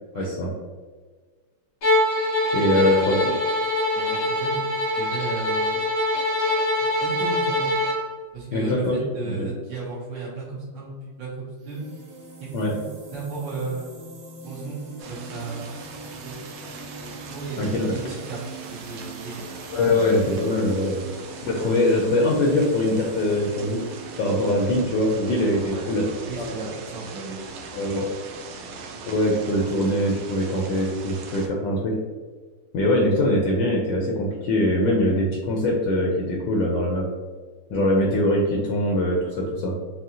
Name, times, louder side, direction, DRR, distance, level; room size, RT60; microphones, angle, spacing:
voice 1, 0.1-0.5 2.5-3.3 8.5-9.5 12.5-12.7 17.6-18.0 19.7-20.9 21.5-23.8 24.2-26.1 26.4-26.5 27.7-28.0 29.1-32.0 32.7-37.0 37.7-39.7, left 1 dB, 70° left, -1 dB, 1.2 m, -22 dB
Bowed string instrument, 1.8-8.0, left 1 dB, 50° left, 0.7 m, -24 dB
voice 2, 2.7-3.3 3.9-5.8 7.0-7.8 8.3-11.8 12.4-13.9 14.4-15.7 16.2-16.4 16.9-17.6 17.9-18.4 18.9-19.4 20.0-20.2 21.0-21.2 25.7-25.8 26.3-28.0 28.5-28.6, right 3 dB, 65° right, -7 dB, 1.5 m, -35 dB
sound 1, 11.6-25.0, right 2 dB, 45° right, 1.0 m, -42 dB
sound 2, 15.0-31.5, right 4 dB, 80° right, 1.4 m, -40 dB
6.2 x 2.3 x 2.8 m, 1.4 s
omnidirectional pair, 2.4 m